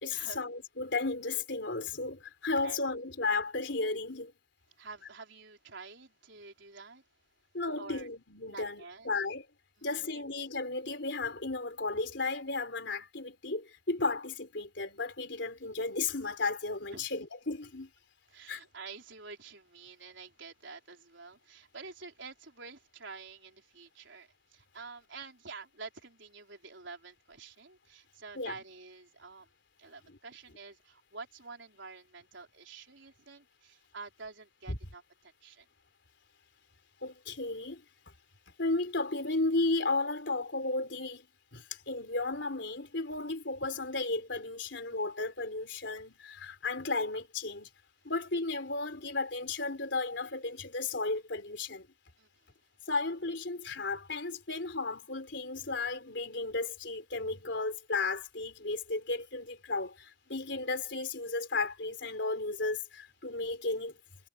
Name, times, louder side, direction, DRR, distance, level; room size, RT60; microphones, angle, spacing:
voice 1, 0.0-4.3 7.5-9.5 9.8-17.9 18.5-18.6 28.4-28.5 30.1-30.2 34.7-34.8 37.0-38.1 38.6-41.3 41.5-47.7 48.0-51.9 52.9-64.0, left 3 dB, 65° left, 4.1 m, -34 dB
voice 2, 4.8-7.0 7.8-8.1 8.5-9.1 9.8-10.1 16.9-17.0 18.3-29.5 29.8-35.7 52.2-52.5, right 4 dB, 70° right, 4.2 m, -48 dB
head